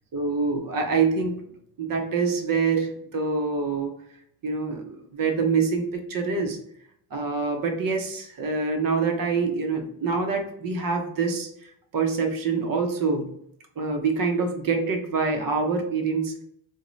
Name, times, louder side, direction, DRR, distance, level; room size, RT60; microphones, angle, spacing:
voice 1, 0.1-1.4 1.8-3.9 4.4-6.6 7.1-11.5 11.9-13.3 13.8-16.3, right 4 dB, 50° right, 3 dB, 0.7 m, -25 dB
3.8 x 2.1 x 3.1 m, 0.70 s
cardioid pair, 145°, 45 cm